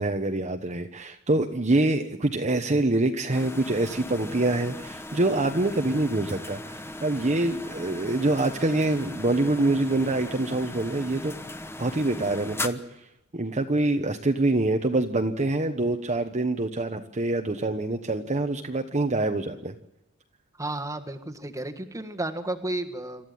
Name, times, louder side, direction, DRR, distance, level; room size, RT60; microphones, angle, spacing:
voice 1, 0.0-11.4 11.8-12.8 13.3-19.7, right 2 dB, 35° right, 5 dB, 1.1 m, -25 dB
sound 1, 3.3-12.7, left 2 dB, 10° left, 1.1 m, -38 dB
voice 2, 20.6-23.3, right 2 dB, 15° right, 5 dB, 1.6 m, -32 dB
27.5 x 14.0 x 9.3 m, 0.89 s
head